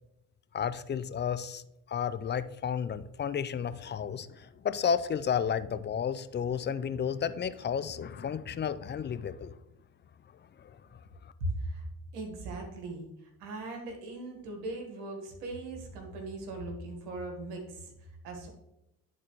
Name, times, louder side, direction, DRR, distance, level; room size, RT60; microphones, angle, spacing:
voice 1, 0.5-1.6 1.9-9.5 10.3-11.3, left 7 dB, 25° left, 13 dB, 0.4 m, -32 dB
voice 2, 11.4-11.9 12.1-13.1 13.4-18.5, right 2 dB, 85° right, 2 dB, 1.4 m, -39 dB
10.5 x 4.1 x 3.0 m, 0.85 s
hypercardioid pair, 55°, 45 cm